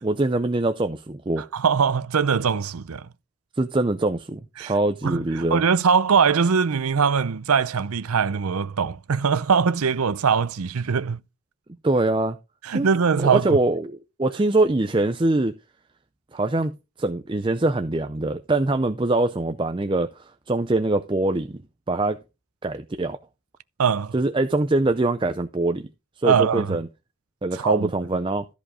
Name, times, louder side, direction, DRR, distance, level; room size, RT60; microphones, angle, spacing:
voice 1, 0.0-1.4 3.6-5.6 11.8-12.4 12.7-12.9 13.2-15.5 16.3-21.6 21.9-22.2 22.6-23.2 24.1-25.9 26.2-26.9 27.4-28.5, right 2 dB, 25° right, 0.5 m, -23 dB
voice 2, 1.4-3.1 4.6-4.7 5.0-11.2 12.6-13.6 23.8-24.1 26.2-26.8 27.5-27.9, right 6 dB, 85° right, 0.6 m, -22 dB
13.5 x 5.1 x 4.9 m
head